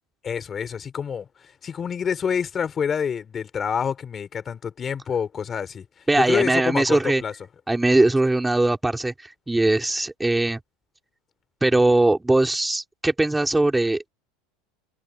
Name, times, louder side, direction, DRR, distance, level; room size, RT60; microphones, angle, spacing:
voice 1, 0.2-7.3, left 7 dB, 25° left, 3.4 m, -27 dB
voice 2, 6.1-7.2 7.7-10.6 11.6-14.1, right 2 dB, 5° right, 2.5 m, -20 dB
supercardioid pair, 130°, 0 cm